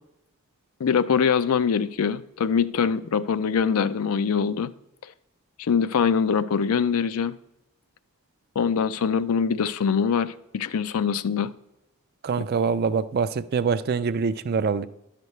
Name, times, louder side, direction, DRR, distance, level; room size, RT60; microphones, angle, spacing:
voice 1, 0.8-4.7 5.6-7.4 8.6-11.5, left 6 dB, 75° left, 14 dB, 0.4 m, -23 dB
voice 2, 12.2-14.9, right 5 dB, 45° right, 14 dB, 0.3 m, -24 dB
11.5 x 6.7 x 3.1 m, 0.89 s
head